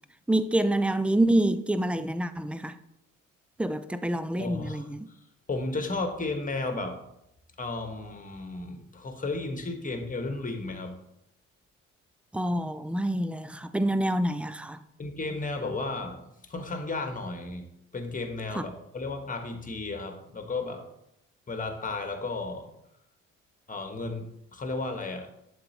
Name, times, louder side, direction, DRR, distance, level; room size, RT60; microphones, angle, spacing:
voice 1, 0.3-2.8 3.6-5.1 12.3-14.8 18.5-18.6, right 1 dB, 5° right, 0.3 m, -27 dB
voice 2, 4.4-5.2 5.5-7.0 7.6-10.9 15.0-17.6 17.9-20.8 21.5-22.7 23.7-25.3, left 3 dB, 20° left, 1.4 m, -34 dB
11.0 x 3.8 x 3.0 m
figure-of-eight pair, 45°, 37 cm